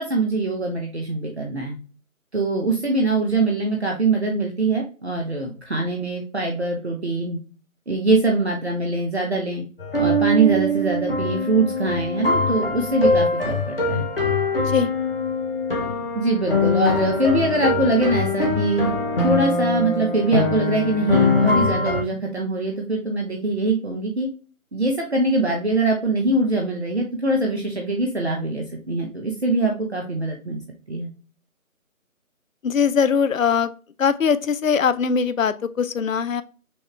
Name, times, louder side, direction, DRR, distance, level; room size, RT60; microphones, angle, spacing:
voice 1, 0.0-1.8 2.3-7.4 7.9-9.6 10.0-14.1 16.1-18.9 19.2-24.3 24.7-30.6 30.9-31.1, right 2 dB, 50° right, 0 dB, 0.9 m, -23 dB
sound 1, 9.8-22.0, left 2 dB, 40° left, 1.0 m, -22 dB
voice 2, 32.6-33.7 34.0-36.4, left 6 dB, 65° left, 14 dB, 0.5 m, -21 dB
6.2 x 2.4 x 3.0 m, 0.36 s
figure-of-eight pair, 165°, 43 cm